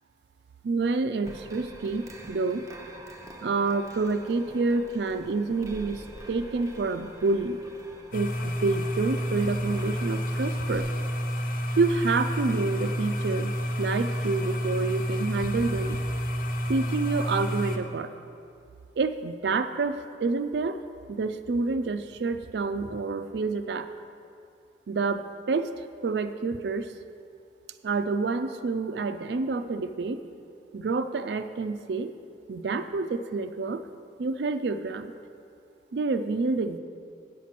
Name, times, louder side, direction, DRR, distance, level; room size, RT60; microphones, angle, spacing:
voice 1, 0.6-2.6 3.4-7.6 8.1-10.9 11.8-16.0 16.7-18.1 19.0-20.8 21.1-23.9 24.9-26.9 27.8-30.2 30.7-32.1 32.5-33.8 34.2-35.1 35.9-36.8, right 3 dB, 70° right, 10 dB, 0.4 m, -28 dB
sound 1, 1.2-10.9, right 1 dB, 20° right, 0.6 m, -46 dB
sound 2, 8.1-17.8, equal, 45° left, 0.7 m, -29 dB
9.1 x 7.3 x 5.9 m, 2.4 s
head